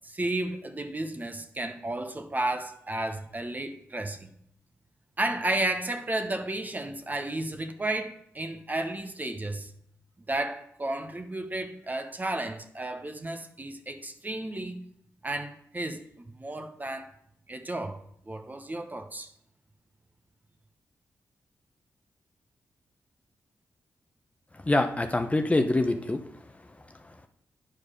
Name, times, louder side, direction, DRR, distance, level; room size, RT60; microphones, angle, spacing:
voice 1, 0.0-4.3 5.2-9.7 10.3-14.8 15.2-17.1 17.5-18.0 18.3-19.3, right 2 dB, 30° right, 1.0 m, -33 dB
voice 2, 24.5-26.2 27.0-27.3, left 2 dB, 25° left, 0.8 m, -25 dB
9.0 x 4.7 x 5.0 m
supercardioid pair, 45°, 6 cm